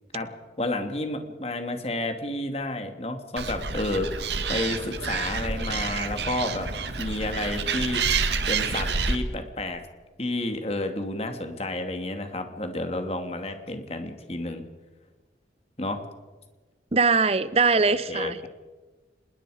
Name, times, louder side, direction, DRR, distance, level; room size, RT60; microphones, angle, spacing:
voice 1, 0.6-4.1 4.5-6.7 7.0-8.0 8.5-9.8 10.2-14.6 15.8-16.0 17.8-18.5, left 2 dB, 35° left, 6 dB, 2.5 m, -30 dB
Animal, 3.4-9.2, right 5 dB, 70° right, 1.8 m, -28 dB
voice 2, 16.9-18.5, right 4 dB, 35° right, 15 dB, 0.9 m, -22 dB
26.0 x 21.5 x 5.1 m, 1.3 s
head